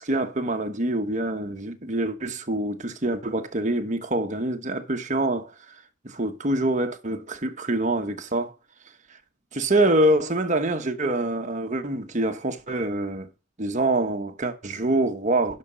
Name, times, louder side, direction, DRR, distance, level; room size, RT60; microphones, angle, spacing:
voice 1, 0.0-8.5 9.5-13.3 13.6-15.6, right 1 dB, 35° right, 1.1 m, -25 dB
12.0 x 4.9 x 5.5 m
head